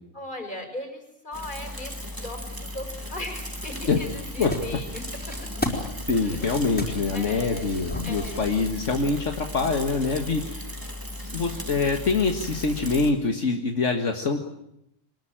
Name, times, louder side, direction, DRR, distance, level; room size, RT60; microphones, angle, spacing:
voice 1, 0.1-5.3 6.1-6.4 7.1-8.6, left 1 dB, 40° left, 4 dB, 5.4 m, -38 dB
Bicycle / Mechanisms, 1.3-13.1, left 1 dB, 15° right, 2.8 m, -36 dB
sound 1, 3.7-8.7, left 1 dB, 5° left, 4.6 m, -35 dB
voice 2, 6.1-10.6 11.3-14.4, left 4 dB, 75° left, 4 dB, 2.1 m, -25 dB
24.0 x 20.5 x 9.0 m, 0.79 s
omnidirectional pair, 1.3 m